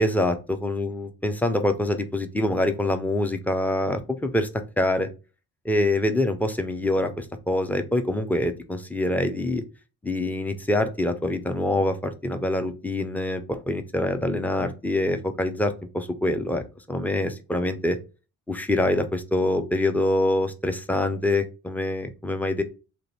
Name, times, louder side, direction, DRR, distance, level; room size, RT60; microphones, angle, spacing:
voice 1, 0.0-4.5 4.8-5.1 5.6-9.6 10.0-18.0 18.5-22.6, left 1 dB, 5° left, 7 dB, 0.4 m, -25 dB
2.7 x 2.5 x 4.2 m, 0.32 s
figure-of-eight pair, 45°, 49 cm